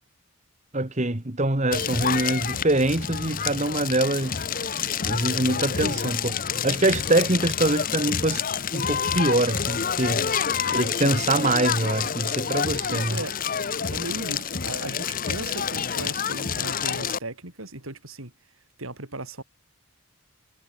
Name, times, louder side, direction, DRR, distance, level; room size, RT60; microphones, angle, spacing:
voice 1, 0.7-8.4 8.7-10.2 10.7-13.2, right 2 dB, 35° right, 1.7 m, -24 dB
Crackle, 1.7-17.2, left 7 dB, 40° left, 0.8 m, -28 dB
voice 2, 12.9-13.4 13.9-18.3 18.8-19.4, right 2 dB, 75° right, 4.6 m, -36 dB
head